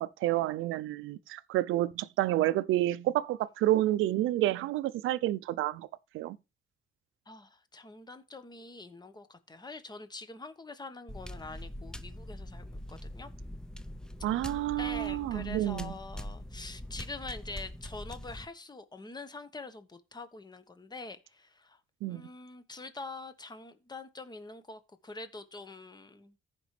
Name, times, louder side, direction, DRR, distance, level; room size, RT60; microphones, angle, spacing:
voice 1, 0.0-5.9 6.1-6.4 14.2-15.9 22.0-22.2, right 15 dB, 85° right, 0.5 m, -29 dB
voice 2, 7.2-13.3 14.3-21.8 22.1-26.4, left 3 dB, 20° left, 1.2 m, -45 dB
sound 1, 11.1-18.5, left 1 dB, 5° left, 0.6 m, -43 dB
15.0 x 5.2 x 3.3 m
cardioid pair, 90°, 20 cm